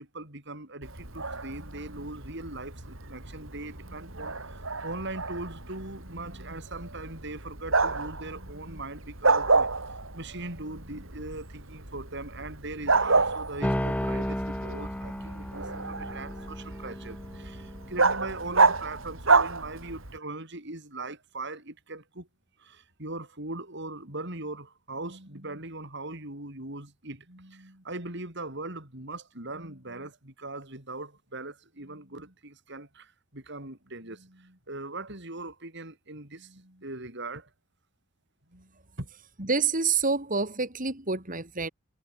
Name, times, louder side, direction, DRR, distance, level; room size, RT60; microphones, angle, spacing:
voice 1, 0.0-22.3 22.6-37.5 38.5-39.1, right 2 dB, 60° right, 7.3 m, -40 dB
Bark, 0.8-20.2, right 3 dB, 85° right, 5.7 m, -29 dB
sound 1, 13.6-18.5, equal, 5° left, 2.1 m, -34 dB
voice 2, 39.4-41.7, right 4 dB, 45° right, 5.4 m, -27 dB
head